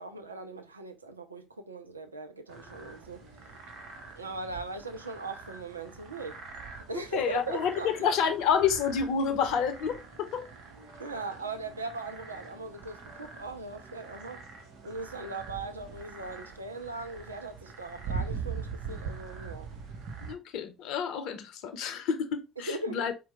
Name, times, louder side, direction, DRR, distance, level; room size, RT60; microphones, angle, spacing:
voice 1, 0.0-3.3 4.2-6.4 6.7-8.1 11.0-14.4 14.8-19.7 22.6-23.0, right 3 dB, 90° right, 0.3 m, -39 dB
sound 1, 2.5-20.3, right 5 dB, 60° right, 0.9 m, -43 dB
voice 2, 7.1-10.5 20.2-23.1, left 7 dB, 65° left, 0.7 m, -29 dB
4.5 x 2.1 x 4.1 m
figure-of-eight pair, 50°, 0 cm